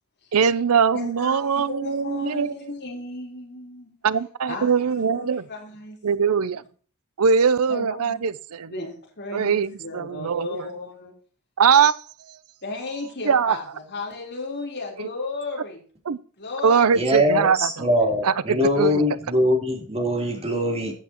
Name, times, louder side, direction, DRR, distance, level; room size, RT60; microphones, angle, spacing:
voice 1, 0.3-2.5 4.0-5.4 6.0-6.6 7.2-8.7 9.3-10.6 11.6-11.9 12.3-12.4 13.3-13.6 15.0-15.1 16.1-16.2 16.6-17.7 18.2-19.0, right 6 dB, 75° right, 0.5 m, -21 dB
voice 2, 0.9-3.9 4.5-6.0 7.7-8.2 8.7-11.1 12.6-15.8 16.4-17.1, left 3 dB, 50° left, 3.9 m, -34 dB
voice 3, 16.9-20.9, equal, 30° right, 3.3 m, -22 dB
14.5 x 8.3 x 3.0 m
head